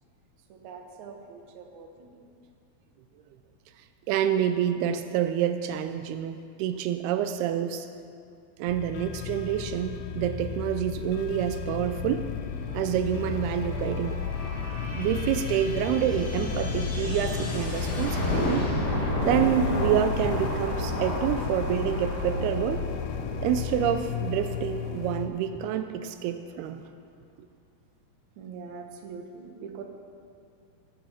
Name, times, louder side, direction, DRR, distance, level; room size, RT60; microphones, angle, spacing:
voice 1, 0.5-2.3 28.4-29.8, right 5 dB, 65° right, 3 dB, 2.1 m, -43 dB
voice 2, 3.8-7.9 8.6-12.3 12.7-14.2 14.9-18.7 19.2-22.8 23.4-26.8, right 10 dB, 85° right, 9 dB, 2.5 m, -28 dB
sound 1, 8.7-25.3, left 6 dB, 75° left, 2.1 m, -33 dB
sound 2, 11.8-25.3, left 1 dB, 35° left, 2.0 m, -33 dB
17.5 x 8.5 x 5.8 m, 2.3 s
omnidirectional pair, 4.5 m